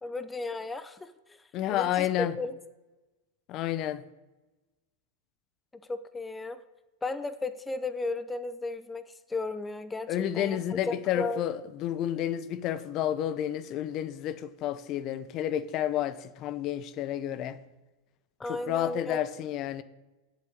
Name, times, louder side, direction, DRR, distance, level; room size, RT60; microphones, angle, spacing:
voice 1, 0.0-1.1 1.7-2.1 2.4-2.5 5.9-6.6 7.0-9.0 9.3-10.6 10.9-11.4 18.4-19.2, left 3 dB, 10° left, 0.7 m, -34 dB
voice 2, 1.5-2.4 3.5-4.0 10.1-17.6 18.5-19.8, left 11 dB, 45° left, 0.8 m, -30 dB
8.1 x 7.3 x 8.6 m
hypercardioid pair, 120°, 0 cm